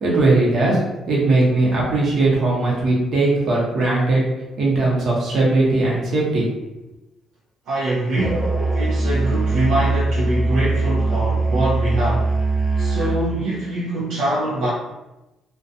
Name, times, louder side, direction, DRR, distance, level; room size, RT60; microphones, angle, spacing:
voice 1, 0.0-0.8 1.1-4.2 4.6-6.5, right 2 dB, 60° right, -4 dB, 0.9 m, -19 dB
voice 2, 7.7-12.4 12.8-14.7, right 1 dB, 80° right, -7 dB, 0.5 m, -24 dB
Musical instrument, 8.2-13.3, right 3 dB, 20° right, 0.4 m, -21 dB
2.4 x 2.2 x 2.6 m, 0.96 s
cardioid pair, 95°, 0 cm